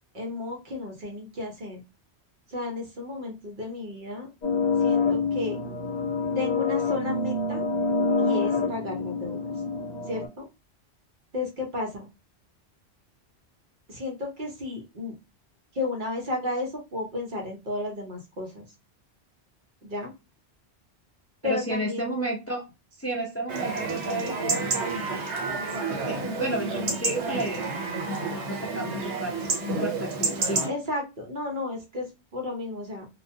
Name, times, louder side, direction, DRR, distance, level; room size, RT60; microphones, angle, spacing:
voice 1, 0.1-1.8 2.5-4.3 4.8-5.6 6.4-7.6 8.2-9.4 10.1-10.5 11.3-12.1 13.9-15.1 15.7-18.7 19.8-20.1 21.4-22.1 30.7-33.1, left 2 dB, 50° right, 0 dB, 0.8 m, -33 dB
sound 1, 4.4-10.3, left 4 dB, 45° left, 1.0 m, -26 dB
voice 2, 21.4-22.6 23.0-24.6 25.9-27.7 28.2-30.7, right 1 dB, 25° left, -2 dB, 0.3 m, -32 dB
Chatter / Livestock farm animals working animals / Chirp tweet, 23.5-30.7, right 3 dB, 85° right, 1.0 m, -29 dB
2.3 x 2.1 x 2.7 m, 0.26 s
omnidirectional pair, 1.1 m